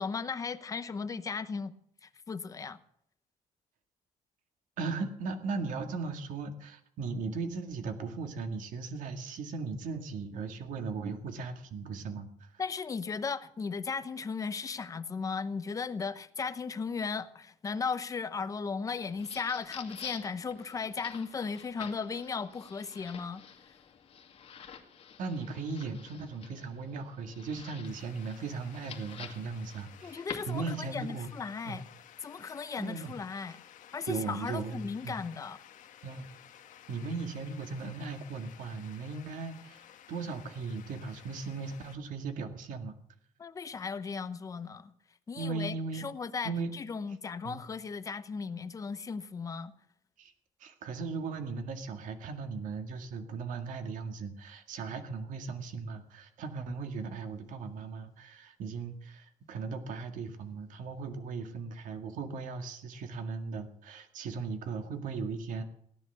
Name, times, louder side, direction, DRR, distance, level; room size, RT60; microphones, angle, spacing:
voice 1, 0.0-1.7 2.0-2.8 12.6-23.8 30.0-31.8 32.2-33.6 33.9-35.6 43.4-44.9 45.3-49.7, left 5 dB, 25° left, 0.8 m, -36 dB
voice 2, 4.8-12.5 25.2-31.3 31.7-31.8 32.8-33.1 34.1-35.2 36.0-36.3 36.9-43.0 45.4-46.1 46.4-46.7 47.4-47.6 50.2-50.3 50.6-65.6, right 4 dB, 75° right, 2.0 m, -37 dB
sound 1, 19.0-31.0, left 7 dB, 45° left, 2.2 m, -49 dB
sound 2, 27.8-42.0, left 11 dB, 75° left, 1.3 m, -55 dB
17.0 x 10.5 x 6.9 m
cardioid pair, 180°, 13 cm